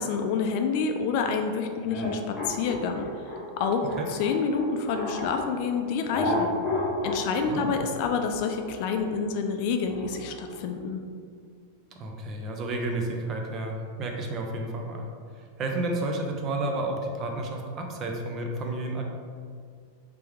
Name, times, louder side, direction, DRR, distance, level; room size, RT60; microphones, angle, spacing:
voice 1, 0.0-3.1 3.6-6.5 7.0-11.0, left 5 dB, 55° left, 5 dB, 0.4 m, -28 dB
sound 1, 1.8-5.5 6.1-10.6, left 2 dB, 25° left, 0.9 m, -32 dB
voice 2, 3.8-4.1 7.5-7.8 12.0-15.1 15.6-19.0, right 2 dB, 35° right, 2 dB, 0.6 m, -31 dB
3.3 x 3.0 x 3.5 m, 2.1 s
supercardioid pair, 130°, 0 cm